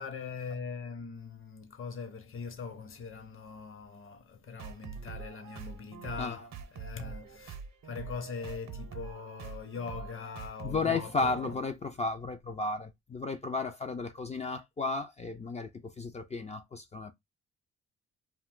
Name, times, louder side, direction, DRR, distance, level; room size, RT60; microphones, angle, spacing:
voice 1, 0.0-7.6 7.8-11.6, left 5 dB, 45° left, 0.8 m, -41 dB
sound 1, 4.6-11.6, right 6 dB, 65° right, 0.7 m, -44 dB
voice 2, 10.6-17.1, left 3 dB, 25° left, 0.4 m, -33 dB
2.4 x 2.2 x 3.6 m
cardioid pair, 90°, 30 cm